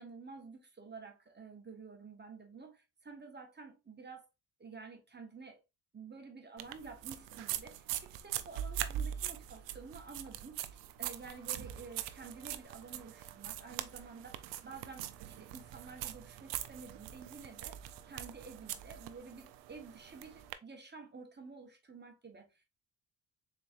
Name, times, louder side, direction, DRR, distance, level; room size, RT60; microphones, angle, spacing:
voice 1, 0.0-4.3 4.6-5.6 5.9-22.6, right 4 dB, 25° right, 1.2 m, -51 dB
sound 1, 6.6-20.5, right 11 dB, 80° right, 0.5 m, -42 dB
4.0 x 3.2 x 2.4 m
cardioid pair, 70°, 43 cm